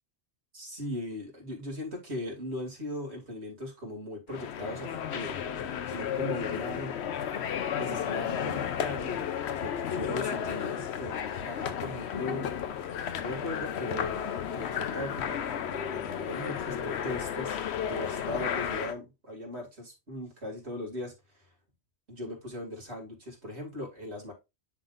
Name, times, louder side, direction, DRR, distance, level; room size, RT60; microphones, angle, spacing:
voice 1, 0.5-6.9 7.7-9.3 9.5-11.2 11.4-12.5 13.2-14.2 14.5-17.6 17.9-21.4 22.1-24.3, left 1 dB, 80° right, 2.8 m, -38 dB
sound 1, 4.3-18.9, left 8 dB, 75° left, 1.0 m, -33 dB
10.5 x 4.0 x 2.5 m
omnidirectional pair, 1.1 m